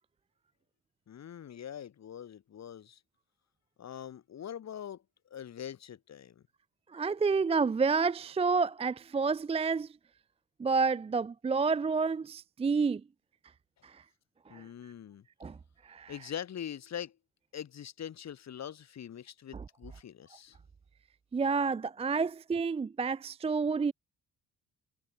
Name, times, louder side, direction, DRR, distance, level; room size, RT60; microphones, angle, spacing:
voice 1, 1.1-3.0 3.8-6.4 14.5-15.3 16.1-17.2 17.5-20.6, left 9 dB, 60° left, 6.8 m, -43 dB
voice 2, 6.9-9.9 10.6-13.0 14.5-14.6 15.4-15.5 15.9-16.1 21.3-23.9, right 4 dB, 20° right, 0.5 m, -29 dB
cardioid pair, 90°, 30 cm